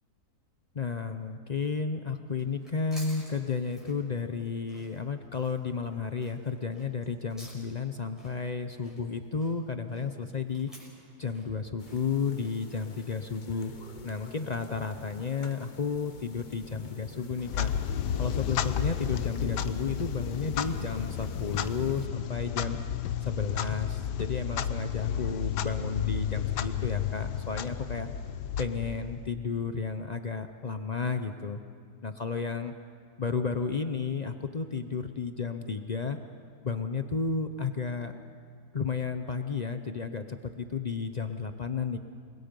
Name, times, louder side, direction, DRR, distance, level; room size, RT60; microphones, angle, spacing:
voice 1, 0.7-10.7 11.2-13.7 14.0-17.7 18.2-22.8 23.2-28.1 28.6-31.6 32.0-32.7 33.2-36.2 36.6-38.2 38.7-42.0, left 5 dB, 60° left, 8 dB, 0.4 m, -32 dB
sound 1, 2.3-14.5, equal, ahead, 6.0 m, -54 dB
sound 2, 11.8-22.1, left 4 dB, 35° left, 0.8 m, -45 dB
Clock, 17.4-29.3, left 9 dB, 80° left, 1.4 m, -32 dB
29.0 x 21.0 x 5.3 m, 2.2 s
omnidirectional pair, 1.8 m